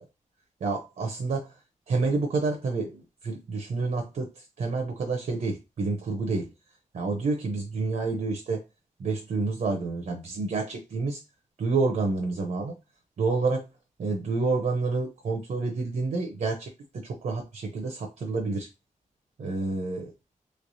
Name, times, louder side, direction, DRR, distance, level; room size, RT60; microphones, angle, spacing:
voice 1, 0.6-1.6 1.9-6.5 6.9-8.6 9.0-11.2 11.6-12.7 13.2-13.7 14.0-18.7 19.4-20.1, right 3 dB, 75° right, 0.7 m, -29 dB
3.3 x 3.2 x 2.6 m
wide cardioid pair, 135°, 14 cm